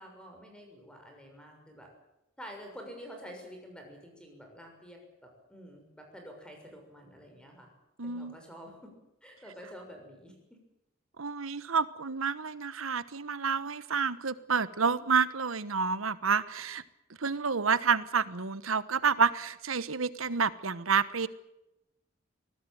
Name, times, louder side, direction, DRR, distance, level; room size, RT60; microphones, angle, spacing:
voice 1, 0.0-1.9 2.4-7.7 8.0-8.9 9.2-10.4, equal, 5° left, 2 dB, 6.6 m, -48 dB
voice 2, 8.0-8.3 11.2-16.8 17.2-21.3, right 5 dB, 90° right, 15 dB, 1.2 m, -29 dB
24.5 x 17.5 x 9.3 m, 0.89 s
head